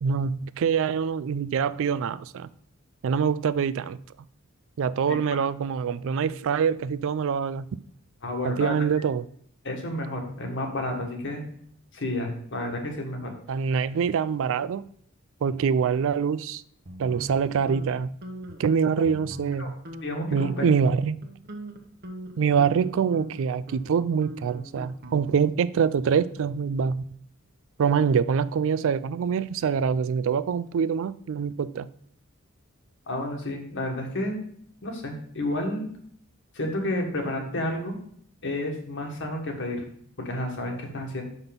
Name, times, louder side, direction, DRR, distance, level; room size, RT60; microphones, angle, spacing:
voice 1, 0.0-2.5 3.0-4.0 4.8-7.7 8.4-9.3 13.5-14.9 15.4-16.6 17.0-18.1 18.6-19.8 20.3-21.2 22.4-27.0 27.8-31.9, right 6 dB, 65° right, 0.3 m, -25 dB
voice 2, 8.2-8.8 9.6-11.4 11.9-13.3 19.6-19.7 20.0-20.7 33.1-34.4 34.8-35.8 36.5-38.0 38.4-39.8 40.2-41.2, left 1 dB, 60° left, 1.6 m, -30 dB
sound 1, 16.9-17.9 18.2-18.6 19.0-19.6 19.9-20.1 20.4-20.8 21.2-25.6, right 1 dB, 50° right, 1.0 m, -41 dB
6.0 x 5.7 x 5.2 m
head